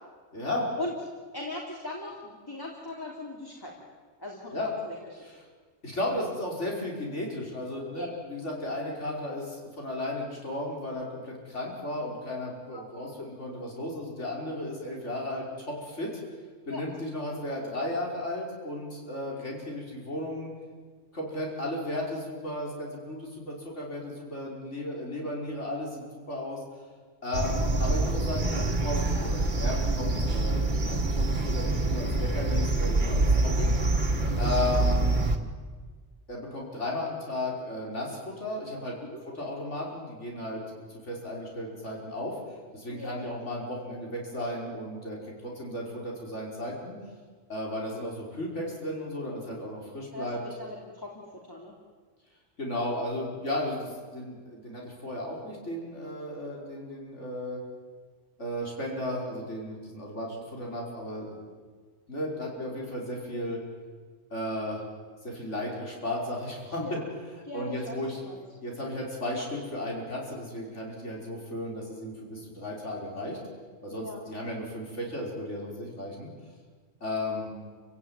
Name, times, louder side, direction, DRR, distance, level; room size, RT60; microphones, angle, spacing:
voice 1, 0.3-0.7 4.5-4.7 5.2-5.4 5.8-16.1 16.7-20.5 21.1-26.6 27.2-33.8 34.4-35.1 36.3-39.0 39.3-42.3 42.7-45.2 45.4-47.0 47.5-50.4 52.6-57.6 58.4-61.4 62.1-63.6 64.3-64.8 65.2-67.0 67.5-68.2 68.6-73.4 73.8-76.3 77.0-77.5, left 1 dB, 70° left, -2 dB, 5.7 m, -34 dB
voice 2, 1.3-3.7 4.2-4.6 4.8-5.0 7.9-8.1 12.7-12.8 16.7-16.8 34.3-34.5 39.0-39.2 42.9-43.2 50.1-51.1 51.4-51.7 66.8-67.1 67.4-68.4 73.9-74.2, left 1 dB, 15° left, -2 dB, 3.5 m, -39 dB
sound 1, 27.3-35.4, right 2 dB, 40° right, 2.1 m, -26 dB
29.0 x 17.0 x 9.8 m, 1.5 s
omnidirectional pair, 1.2 m